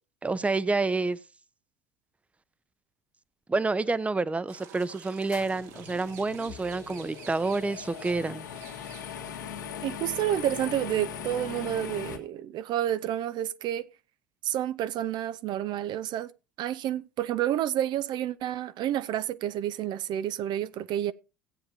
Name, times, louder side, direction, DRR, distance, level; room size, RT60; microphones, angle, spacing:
voice 1, 0.2-1.2 3.5-8.5, right 3 dB, 15° right, 0.7 m, -28 dB
sound 1, 4.5-9.6, right 9 dB, 70° right, 1.8 m, -50 dB
sound 2, 5.3-12.2, left 8 dB, 75° left, 1.9 m, -40 dB
voice 2, 9.8-13.9 14.4-16.3 16.6-21.1, right 11 dB, 50° right, 0.6 m, -29 dB
17.0 x 8.7 x 2.8 m
figure-of-eight pair, 65°, 10 cm